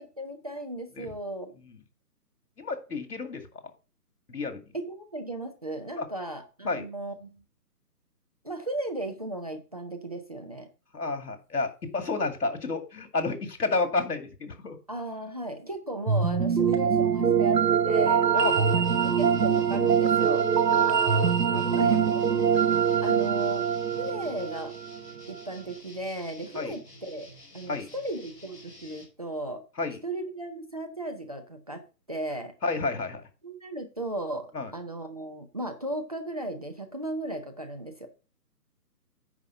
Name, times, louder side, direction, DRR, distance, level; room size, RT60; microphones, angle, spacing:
voice 1, 0.0-1.6 4.7-7.4 8.4-10.7 14.9-20.4 21.7-22.0 23.0-23.7 24.0-24.7 25.3-27.3 27.5-29.6 30.0-31.8 32.1-32.5 33.4-34.5 34.7-38.1, right 1 dB, 25° right, 6 dB, 0.6 m, -36 dB
voice 2, 2.6-3.4 4.3-4.6 6.0-6.1 6.6-6.9 10.9-14.8 18.3-18.5 20.7-22.0 26.5-26.7 27.7-27.9 29.8-30.0 32.6-33.2 34.5-34.7, left 3 dB, 70° left, 7 dB, 2.3 m, -31 dB
sound 1, 16.1-25.2, right 7 dB, 85° right, 1.0 m, -23 dB
sound 2, 18.4-29.0, left 1 dB, 15° left, 3.4 m, -51 dB
9.7 x 4.4 x 5.7 m, 0.33 s
figure-of-eight pair, 150°, 48 cm